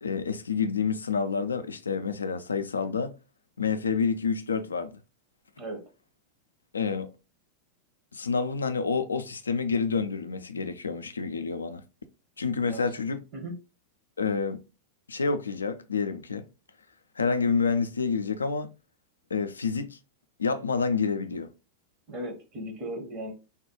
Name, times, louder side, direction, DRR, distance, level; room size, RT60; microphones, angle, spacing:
voice 1, 0.0-3.1 3.6-4.9 6.7-7.1 8.1-11.8 12.4-13.2 14.2-14.6 15.1-16.5 17.2-18.7 19.3-20.0 20.4-21.5, left 5 dB, 75° left, 0.3 m, -28 dB
voice 2, 22.1-23.3, right 1 dB, 35° right, 0.8 m, -37 dB
3.5 x 2.2 x 2.8 m
figure-of-eight pair, 90°, 0 cm